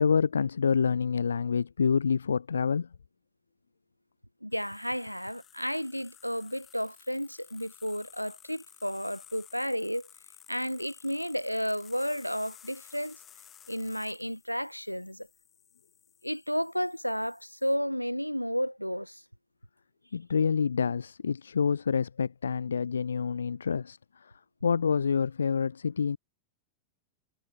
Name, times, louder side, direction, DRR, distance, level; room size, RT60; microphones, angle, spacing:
voice 1, 0.0-2.9 20.1-24.3 24.6-26.2, left 6 dB, 70° left, 0.3 m, -27 dB
voice 2, 4.4-10.1 10.5-13.2 13.7-15.3 16.2-19.2, equal, 90° left, 0.9 m, -32 dB
sound 1, 4.5-17.7, left 9 dB, 25° left, 7.4 m, -55 dB
figure-of-eight pair, 90°, 0 cm